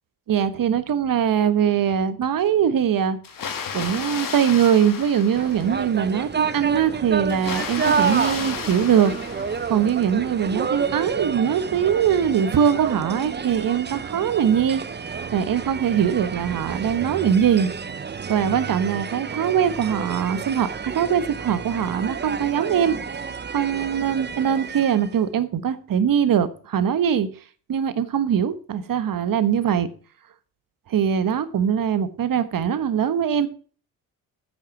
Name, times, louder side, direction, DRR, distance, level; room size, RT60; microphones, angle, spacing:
voice 1, 0.3-3.2 3.7-9.1 9.7-14.8 15.3-17.7 18.3-23.0 23.5-27.3 27.7-29.9 30.9-33.5, right 8 dB, 55° right, 1.3 m, -22 dB
Water, 3.2-6.1 7.3-10.1, left 6 dB, 50° left, 1.7 m, -33 dB
sound 1, 5.3-25.2, right 6 dB, 25° right, 0.8 m, -30 dB
9.8 x 6.4 x 6.0 m
hypercardioid pair, 50°, 41 cm